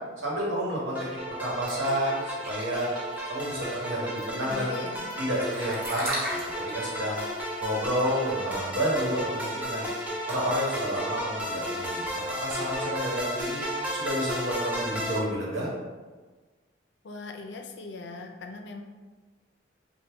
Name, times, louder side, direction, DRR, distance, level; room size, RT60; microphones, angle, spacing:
voice 1, 0.2-2.9 3.3-4.7 5.2-6.1 6.6-7.2 7.6-9.9 10.3-13.6 13.9-15.7, equal, 85° right, -5 dB, 1.1 m, -30 dB
sound 1, 0.9-15.2, equal, 10° right, 0.5 m, -34 dB
sound 2, 1.7-9.4, right 1 dB, 55° right, 0.9 m, -38 dB
voice 2, 4.4-5.2 17.0-18.8, left 3 dB, 65° left, 5 dB, 0.4 m, -40 dB
3.3 x 2.1 x 3.5 m, 1.3 s
head